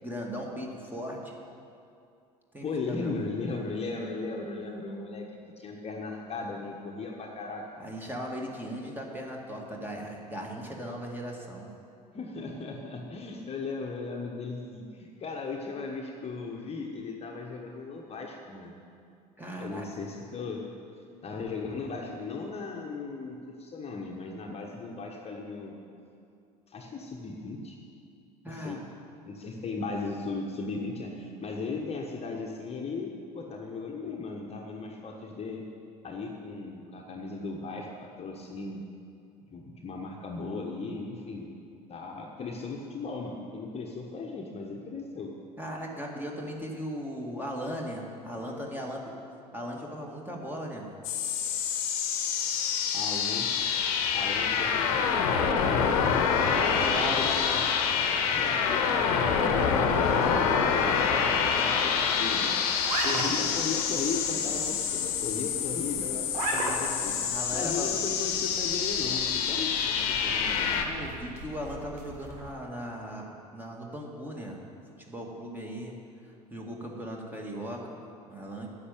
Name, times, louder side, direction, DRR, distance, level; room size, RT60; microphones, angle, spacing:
voice 1, 0.0-1.4 2.5-3.1 7.8-11.7 19.4-19.9 28.4-28.8 45.6-49.1 49.5-50.9 56.6-57.3 67.1-68.0 70.9-74.6 75.1-78.7, equal, 10° right, -1 dB, 2.1 m, -38 dB
voice 2, 2.6-5.3 5.6-7.6 12.1-18.7 19.6-20.6 21.2-25.8 26.7-27.8 28.4-28.8 29.2-35.6 36.0-38.8 39.5-41.5 41.9-45.3 52.9-53.5 54.1-57.8 58.1-62.7 63.0-70.8, left 4 dB, 30° left, 0 dB, 1.3 m, -37 dB
sound 1, 51.0-70.9, left 6 dB, 60° left, 1.1 m, -27 dB
sound 2, 62.8-72.5, right 2 dB, 65° right, 1.6 m, -38 dB
9.9 x 7.1 x 8.8 m, 2.5 s
figure-of-eight pair, 65°, 21 cm